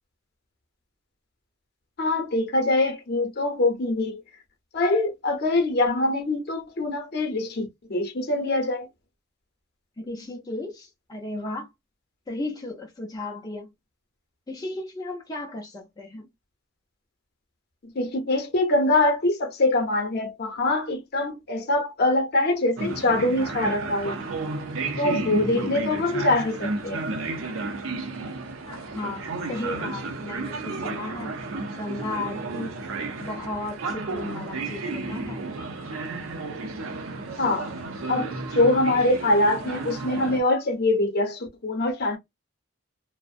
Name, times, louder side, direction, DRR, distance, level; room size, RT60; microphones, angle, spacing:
voice 1, 2.0-4.2 4.7-8.9 18.0-24.2 25.0-27.0 37.4-37.7 38.1-38.3 38.5-42.2, left 2 dB, 55° left, 0.7 m, -24 dB
voice 2, 10.0-11.7 12.3-13.7 14.5-16.3 28.7-31.3 31.7-32.8 33.2-35.4, left 2 dB, 20° left, 0.5 m, -35 dB
sound 1, 22.8-40.4, right 3 dB, 80° right, 0.5 m, -32 dB
2.4 x 2.0 x 2.5 m
head